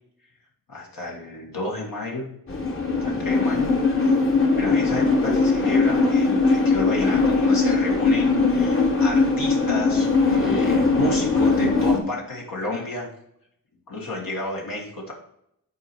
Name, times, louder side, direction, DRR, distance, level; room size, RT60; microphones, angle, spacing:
voice 1, 0.7-2.3 2.9-3.7 4.0-4.2 4.6-13.1 13.9-15.1, left 1 dB, 70° left, -2 dB, 1.6 m, -31 dB
sound 1, 2.5-12.0, left 3 dB, 35° left, 1.3 m, -20 dB
8.1 x 4.2 x 4.5 m, 0.75 s
wide cardioid pair, 105°, 35 cm